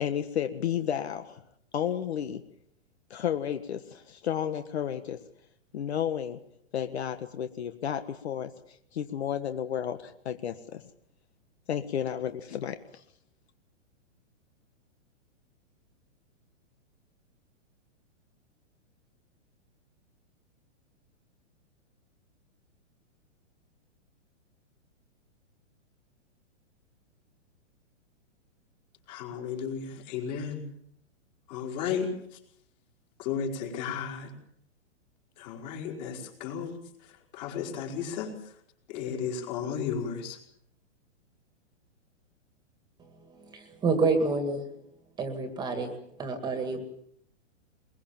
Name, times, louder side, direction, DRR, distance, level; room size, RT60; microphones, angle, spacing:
voice 1, 0.0-1.4 1.7-2.4 3.1-5.2 5.7-6.4 6.7-10.8 11.7-13.0, left 9 dB, 60° left, 9 dB, 1.6 m, -32 dB
voice 2, 29.1-30.6 31.5-32.1 33.2-34.3 35.4-36.8 37.3-38.4 38.9-40.4, left 7 dB, 35° left, 1 dB, 5.1 m, -33 dB
voice 3, 43.5-44.7 45.2-45.9 46.2-46.8, right 3 dB, 10° right, 7 dB, 2.2 m, -28 dB
23.0 x 22.5 x 7.4 m, 0.70 s
hypercardioid pair, 160°, 37 cm